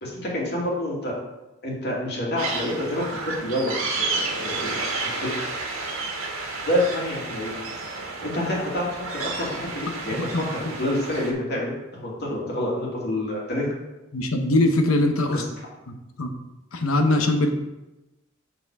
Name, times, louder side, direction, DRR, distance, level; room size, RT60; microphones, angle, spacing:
voice 1, 0.0-1.1 1.6-3.0 3.4-4.1 4.4-4.7 5.0-5.3 6.7-7.5 8.2-10.2 10.5-13.7 15.3-15.4, left 1 dB, 55° left, -3 dB, 2.5 m, -27 dB
sound 1, 2.4-11.3, right 3 dB, 75° right, 1.7 m, -31 dB
voice 2, 10.1-10.4 14.1-15.4 15.9-16.3 16.7-17.5, left 1 dB, 80° left, 5 dB, 1.0 m, -22 dB
7.0 x 5.9 x 4.8 m, 0.99 s
head